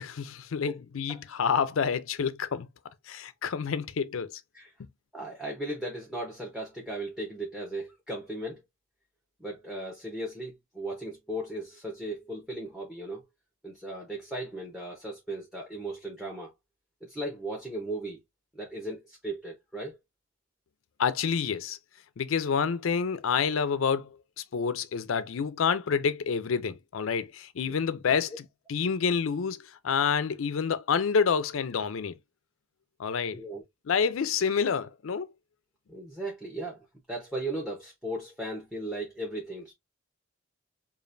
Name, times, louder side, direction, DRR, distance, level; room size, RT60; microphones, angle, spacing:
voice 1, 0.0-2.7 3.1-4.3 4.8-4.9 21.0-21.8 22.2-24.2 24.5-32.1 33.0-33.4 33.9-35.3, left 6 dB, 75° left, 0.5 m, -28 dB
voice 2, 5.1-8.6 9.4-13.2 13.6-16.5 17.0-18.2 18.5-20.0 27.7-27.8 33.3-33.6 35.9-39.7, right 1 dB, ahead, 0.9 m, -37 dB
5.0 x 2.5 x 2.5 m
head